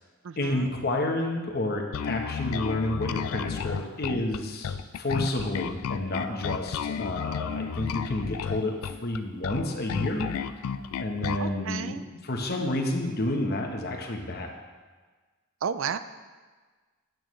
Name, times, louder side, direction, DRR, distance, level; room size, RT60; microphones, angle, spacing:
voice 1, 0.4-10.3 11.0-14.5, left 1 dB, 50° left, 2 dB, 1.0 m, -30 dB
Bass guitar, 1.9-11.5, left 7 dB, 85° left, 0.3 m, -32 dB
voice 2, 11.4-12.0 15.6-16.0, right 7 dB, 65° right, 12 dB, 0.4 m, -31 dB
9.0 x 8.7 x 3.1 m, 1.4 s
head